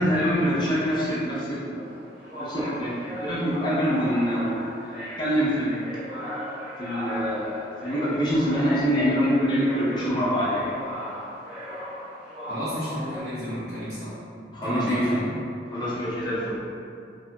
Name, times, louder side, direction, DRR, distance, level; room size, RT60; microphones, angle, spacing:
voice 1, 0.0-1.9 2.4-6.1 6.8-10.7 14.5-15.2 15.7-16.6, equal, 25° left, -8 dB, 0.5 m, -25 dB
sound 1, 1.7-13.2, equal, 30° right, 0.9 m, -38 dB
voice 2, 12.5-14.1 14.4-15.3, equal, 70° right, -13 dB, 1.2 m, -32 dB
2.7 x 2.7 x 2.2 m, 2.4 s
head